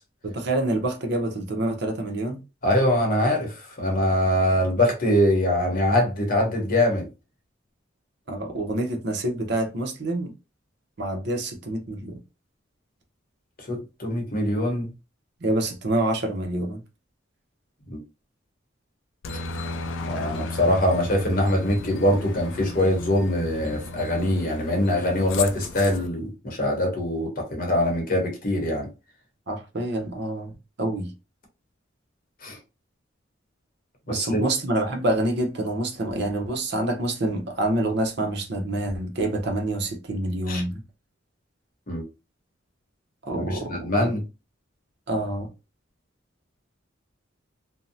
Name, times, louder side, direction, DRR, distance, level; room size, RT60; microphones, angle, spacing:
voice 1, 0.2-2.4 8.3-10.3 11.0-12.2 15.4-16.8 29.5-30.5 30.8-31.1 34.1-40.8 43.3-43.9 45.1-45.5, right 1 dB, 60° right, 0.7 m, -27 dB
voice 2, 2.6-7.1 13.7-14.9 17.9-18.0 20.1-28.9 32.4-32.6 34.1-34.4 40.5-40.6 41.9-42.0 43.3-44.2, left 1 dB, 50° left, 0.9 m, -23 dB
Aircraft, 19.2-26.1, left 3 dB, 75° left, 0.4 m, -34 dB
2.6 x 2.0 x 2.6 m
head